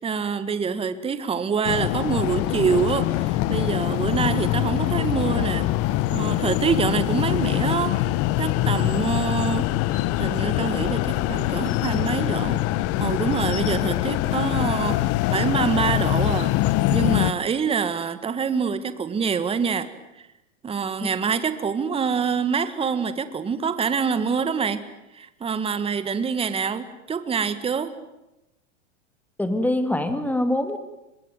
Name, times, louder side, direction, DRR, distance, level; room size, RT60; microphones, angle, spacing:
voice 1, 0.0-5.7 6.1-8.0 8.4-9.7 10.2-12.6 13.0-16.5 16.9-19.9 20.2-20.3 20.6-24.8 25.1-27.9, right 6 dB, 15° right, 12 dB, 1.7 m, -26 dB
sound 1, 1.6-17.3, left 16 dB, 40° left, 1.1 m, -23 dB
voice 2, 29.4-30.8, left 1 dB, 5° left, 9 dB, 2.4 m, -24 dB
25.0 x 22.5 x 9.2 m, 0.94 s
hypercardioid pair, 130°, 38 cm